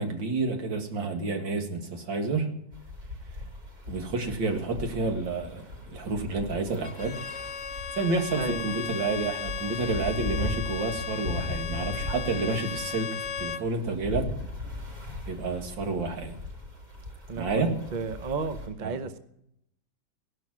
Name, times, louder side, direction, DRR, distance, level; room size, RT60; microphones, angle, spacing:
voice 1, 0.0-2.5 3.9-7.2 8.0-14.3 15.3-16.4 17.4-17.8 18.8-18.9, right 3 dB, 75° right, 5 dB, 2.6 m, -30 dB
sound 1, 2.7-18.7, left 2 dB, 60° right, 5.3 m, -38 dB
Bowed string instrument, 6.8-13.7, left 6 dB, 70° left, 0.6 m, -36 dB
voice 2, 17.3-19.2, right 4 dB, 40° right, 10 dB, 0.7 m, -33 dB
17.5 x 11.5 x 6.2 m, 0.78 s
omnidirectional pair, 2.1 m